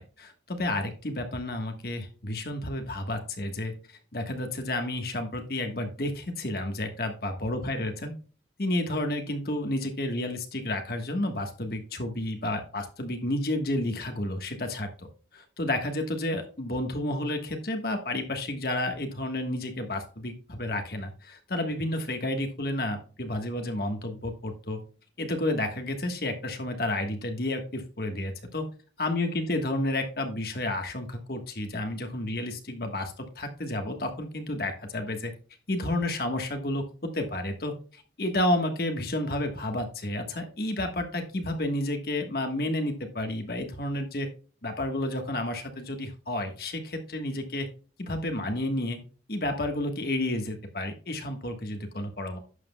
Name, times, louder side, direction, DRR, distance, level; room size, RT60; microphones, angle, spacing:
voice 1, 0.0-8.1 8.6-24.8 25.2-28.6 29.0-35.3 35.7-36.8 37.1-44.3 44.6-47.7 48.0-49.0 49.3-52.4, left 1 dB, 55° left, 5 dB, 1.3 m, -31 dB
11.5 x 7.6 x 2.2 m, 0.38 s
head